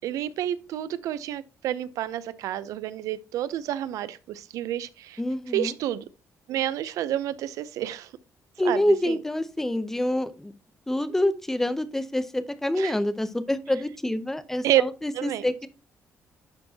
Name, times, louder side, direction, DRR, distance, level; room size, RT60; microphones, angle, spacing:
voice 1, 0.0-5.2 5.5-6.0 6.5-8.1 8.6-9.2 12.8-12.9 14.6-14.8 15.1-15.5, right 12 dB, 85° right, 0.6 m, -29 dB
voice 2, 5.2-5.7 8.6-10.5 10.9-15.7, left 1 dB, 5° left, 0.6 m, -27 dB
11.5 x 4.4 x 2.8 m
cardioid pair, 165°, 6 cm